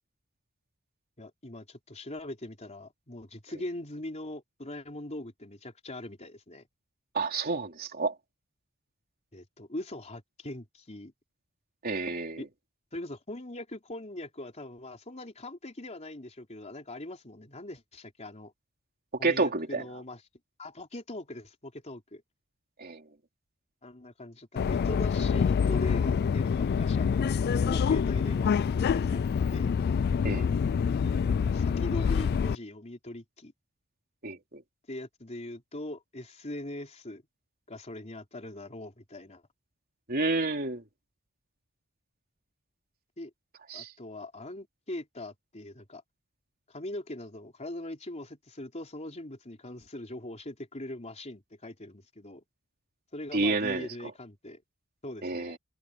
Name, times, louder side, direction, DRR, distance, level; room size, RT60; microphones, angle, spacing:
voice 1, 1.2-6.7 9.3-11.1 12.4-12.5 12.9-18.5 19.2-20.2 20.6-22.2 23.8-29.7 31.5-33.5 34.9-37.2 37.7-39.4 43.2-43.3 43.7-46.0 46.7-52.4 53.1-54.6 55.0-55.6, left 1 dB, 30° left, 3.6 m, -41 dB
voice 2, 7.1-8.1 11.8-12.4 19.2-19.8 22.8-23.0 30.2-30.5 34.2-34.6 40.1-40.8 43.7-43.9 53.3-53.9 55.2-55.5, right 3 dB, 45° right, 3.4 m, -29 dB
Subway metro underground, 24.6-32.6, left 6 dB, 50° left, 0.3 m, -26 dB
head